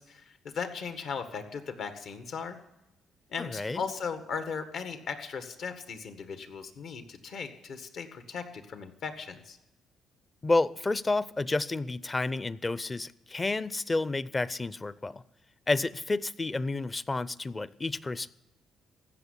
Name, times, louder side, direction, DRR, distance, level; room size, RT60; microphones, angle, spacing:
voice 1, 0.0-2.6 3.3-9.6, left 5 dB, 70° left, 8 dB, 1.7 m, -37 dB
voice 2, 3.4-3.8 10.4-15.2 15.7-18.3, left 2 dB, 25° left, 18 dB, 0.6 m, -30 dB
15.5 x 6.7 x 9.7 m, 0.92 s
cardioid pair, 90°, 0 cm